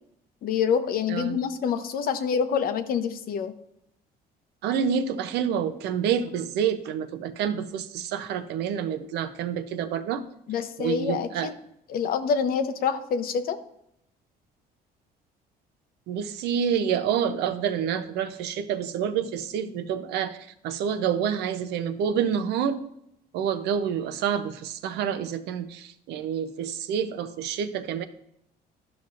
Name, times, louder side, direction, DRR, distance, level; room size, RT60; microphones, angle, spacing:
voice 1, 0.4-3.5 10.5-11.5 11.9-13.6, left 6 dB, 60° left, 10 dB, 0.7 m, -26 dB
voice 2, 1.1-1.4 4.6-10.2 10.8-11.5 16.1-22.9 23.3-28.0, right 8 dB, 80° right, 9 dB, 0.6 m, -28 dB
11.5 x 5.9 x 2.5 m, 0.77 s
cardioid pair, 110°, 17 cm